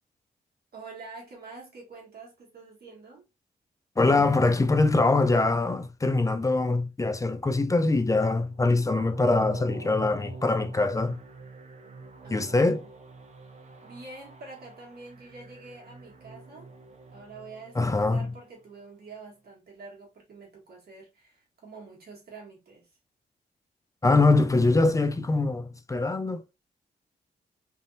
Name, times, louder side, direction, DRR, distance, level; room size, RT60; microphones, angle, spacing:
voice 1, 0.7-3.3 12.2-12.9 13.8-16.7 17.1-23.0, right 3 dB, 65° right, 1.6 m, -46 dB
voice 2, 4.0-11.2 12.3-12.8 17.8-18.3 24.0-26.6, left 3 dB, 20° left, 0.4 m, -23 dB
sound 1, 8.5-18.6, right 3 dB, 40° right, 0.7 m, -46 dB
3.3 x 2.6 x 2.7 m
cardioid pair, 70°, 17 cm